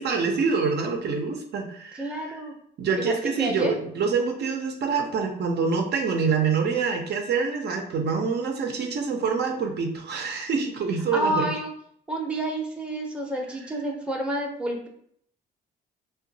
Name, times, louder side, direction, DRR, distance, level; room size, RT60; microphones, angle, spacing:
voice 1, 0.0-2.4 2.8-11.5, right 5 dB, 55° right, 3 dB, 0.5 m, -26 dB
voice 2, 1.9-2.5 3.0-3.1 3.4-3.7 11.1-11.7 12.1-14.9, right 1 dB, 5° right, 0 dB, 0.5 m, -29 dB
2.8 x 2.2 x 2.6 m, 0.67 s
cardioid pair, 90°, 20 cm